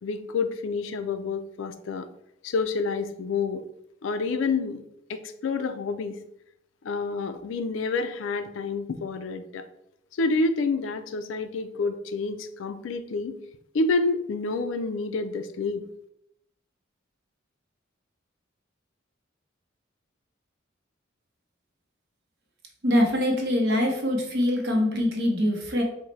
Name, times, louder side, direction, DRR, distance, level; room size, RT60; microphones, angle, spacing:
voice 1, 0.0-2.1 2.4-3.6 4.0-4.8 5.1-6.2 6.8-9.7 10.2-13.4 13.7-15.8, left 3 dB, 75° left, 9 dB, 0.4 m, -28 dB
voice 2, 22.8-25.8, left 1 dB, 55° right, 2 dB, 0.9 m, -23 dB
4.7 x 2.1 x 4.0 m, 0.76 s
head